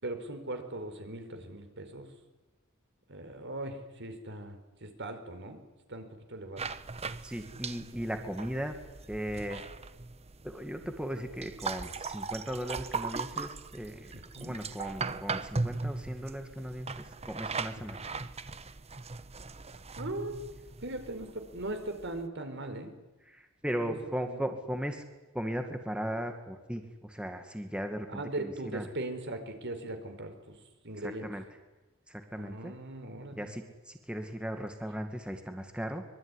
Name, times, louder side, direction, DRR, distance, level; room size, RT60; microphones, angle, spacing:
voice 1, 0.0-2.1 3.1-5.6 5.9-6.7 14.1-14.6 17.8-18.0 20.0-20.5 20.8-22.9 23.8-24.4 28.1-30.6 30.8-31.3 32.4-33.5, right 1 dB, 60° right, 8 dB, 4.5 m, -39 dB
sound 1, 6.6-22.3, right 4 dB, 30° right, 1.1 m, -39 dB
voice 2, 7.2-8.7 9.1-9.7 10.4-18.1 23.3-25.0 25.3-28.9 31.0-31.4 32.1-32.7 33.3-36.0, equal, 5° right, 5 dB, 2.1 m, -37 dB
24.5 x 23.0 x 9.9 m, 1.1 s
head